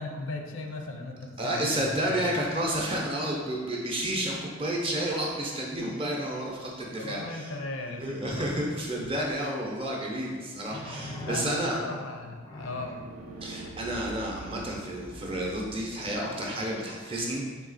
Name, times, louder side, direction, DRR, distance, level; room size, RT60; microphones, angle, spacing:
voice 1, 0.0-2.3 6.9-8.5 9.0-9.1 11.3-13.1, left 2 dB, 70° left, 4 dB, 0.5 m, -37 dB
voice 2, 1.4-7.5 8.0-11.8 13.4-17.7, right 1 dB, 25° right, -1 dB, 0.6 m, -31 dB
sound 1, 9.4-9.5 10.7-11.9 12.4-13.1 15.0-15.2, equal, 15° left, 0.4 m, -41 dB
sound 2, 10.9-16.3, right 2 dB, 80° right, 0.4 m, -46 dB
3.9 x 2.8 x 4.0 m, 1.5 s
head